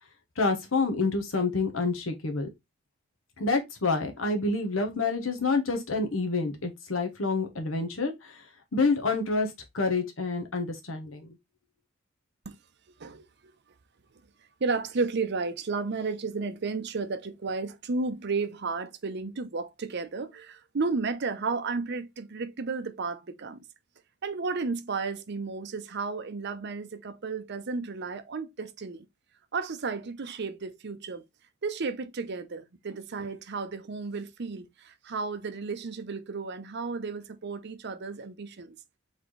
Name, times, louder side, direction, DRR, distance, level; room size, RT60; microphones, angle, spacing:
voice 1, 0.4-2.5 3.4-8.4 8.7-11.3, left 3 dB, 80° left, 1.2 m, -28 dB
voice 2, 14.6-23.6 24.2-29.1 29.5-31.2 31.6-38.8, right 4 dB, 55° right, 0.6 m, -33 dB
4.1 x 3.5 x 3.1 m
head